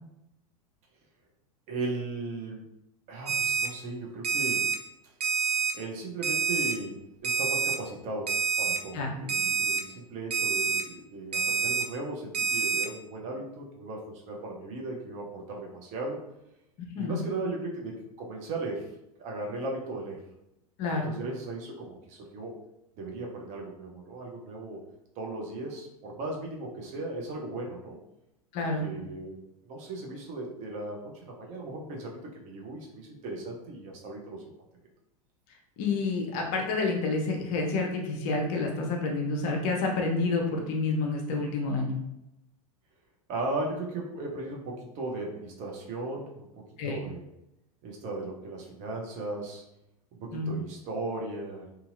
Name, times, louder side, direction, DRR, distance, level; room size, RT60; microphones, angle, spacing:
voice 1, 1.7-2.6 3.1-4.7 5.7-16.2 17.0-18.8 19.2-20.2 20.9-22.6 23.0-24.8 25.2-28.0 28.6-29.4 29.6-34.4 43.3-47.2 47.8-49.6 50.1-51.7, right 2 dB, 35° right, -1 dB, 0.7 m, -37 dB
Alarm, 3.3-3.7 4.2-4.8 5.2-5.7 6.2-6.7 7.2-7.8 8.3-8.8 9.3-9.8 10.3-10.8 11.3-11.8 12.3-12.9, right 5 dB, 80° right, 0.4 m, -27 dB
voice 2, 20.8-21.1 28.5-28.9 35.8-41.9 46.8-47.0 50.3-50.5, left 3 dB, 40° left, 1 dB, 0.6 m, -29 dB
2.8 x 2.7 x 2.5 m, 0.86 s
figure-of-eight pair, 90°, 20 cm